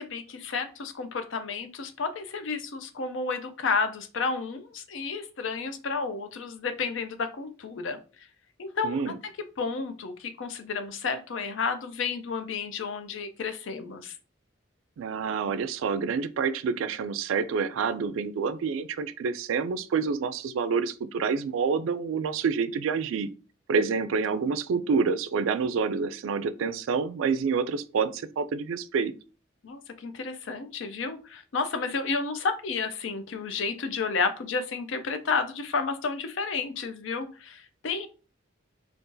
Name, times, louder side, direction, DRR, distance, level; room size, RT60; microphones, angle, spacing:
voice 1, 0.0-8.0 8.6-9.1 9.6-14.2 29.6-38.1, left 4 dB, 75° left, 0.5 m, -31 dB
voice 2, 8.8-9.2 15.0-23.3 23.7-29.1, right 5 dB, 85° right, 0.3 m, -28 dB
2.6 x 2.4 x 3.7 m
head